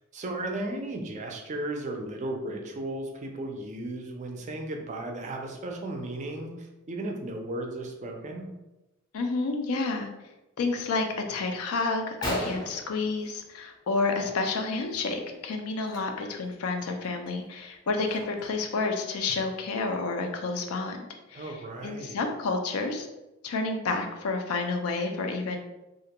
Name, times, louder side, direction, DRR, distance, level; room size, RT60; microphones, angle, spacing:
voice 1, 0.1-8.5 21.3-22.2, right 1 dB, 35° right, 2 dB, 0.3 m, -35 dB
voice 2, 9.1-10.1 10.6-21.0 21.3-21.5 21.8-23.1 23.4-25.6, left 3 dB, 80° left, 4 dB, 0.4 m, -30 dB
Gunshot gunfire, 11.5-11.6 11.9-12.0 12.2-13.8 14.2-14.5 14.8-15.0 15.8-16.0 16.5-16.6 17.0-18.6, equal, 20° left, 0.5 m, -36 dB
2.3 x 2.1 x 2.8 m, 1.0 s
head